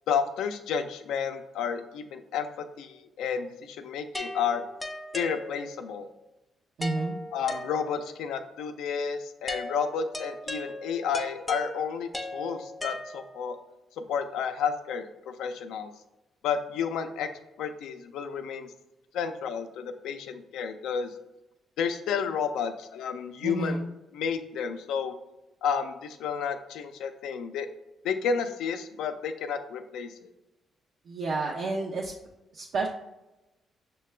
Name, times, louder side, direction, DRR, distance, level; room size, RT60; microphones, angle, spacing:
voice 1, 0.1-4.6 5.1-6.1 7.3-13.6 14.0-15.9 16.4-17.3 17.6-18.7 19.1-21.1 21.8-23.8 24.1-25.2 25.6-27.7 28.0-30.3, left 6 dB, 85° left, 8 dB, 0.4 m, -31 dB
sound 1, 4.1-5.9 6.8-8.2 9.5-13.6, left 1 dB, 10° left, 0.5 m, -38 dB
voice 2, 6.8-7.2 23.4-23.8 31.1-32.1 32.5-32.9, right 3 dB, 70° right, -1 dB, 0.5 m, -30 dB
5.6 x 2.2 x 3.2 m, 0.98 s
cardioid pair, 90°, 0 cm